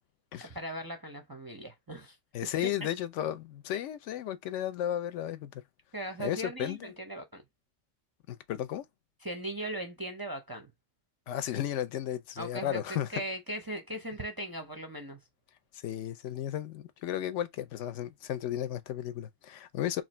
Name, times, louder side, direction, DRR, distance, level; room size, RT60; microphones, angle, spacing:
voice 1, 0.4-2.2 5.9-7.4 9.2-10.7 12.4-15.2, right 1 dB, 30° right, 0.4 m, -39 dB
voice 2, 2.3-5.6 6.2-6.9 8.3-8.8 11.3-13.2 15.7-20.0, left 11 dB, 70° left, 0.9 m, -34 dB
3.1 x 2.5 x 4.2 m
omnidirectional pair, 1.3 m